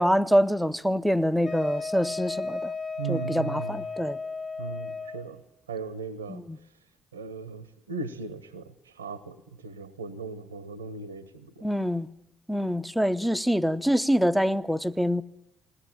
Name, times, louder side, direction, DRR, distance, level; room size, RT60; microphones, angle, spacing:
voice 1, 0.0-2.7 3.1-4.2 6.3-6.6 11.6-12.1 12.5-15.2, equal, ahead, 0.9 m, -25 dB
Wind instrument woodwind instrument, 1.4-5.3, left 4 dB, 45° left, 5.2 m, -34 dB
voice 2, 3.0-3.8 4.6-5.4 5.7-6.4 7.1-11.7, right 5 dB, 80° right, 1.1 m, -37 dB
21.5 x 18.0 x 8.9 m
figure-of-eight pair, 45°, 0 cm